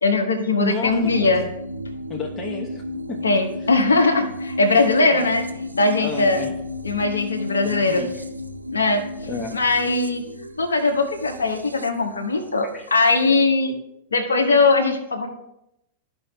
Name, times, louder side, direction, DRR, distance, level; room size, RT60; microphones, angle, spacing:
voice 1, 0.0-1.4 3.2-5.4 5.7-6.4 6.8-8.0 8.7-9.0 9.5-10.2 10.6-13.7 14.1-15.3, left 3 dB, 75° left, 3 dB, 1.1 m, -20 dB
voice 2, 0.6-1.5 2.1-3.2 3.6-3.7 4.8-5.2 6.0-6.6 7.6-8.2 9.3-9.6 12.7-12.9, left 2 dB, 20° left, 0 dB, 1.0 m, -32 dB
sound 1, 0.8-13.3, left 2 dB, 90° right, 0.4 m, -33 dB
13.5 x 5.4 x 2.2 m, 0.81 s
figure-of-eight pair, 95°, 0 cm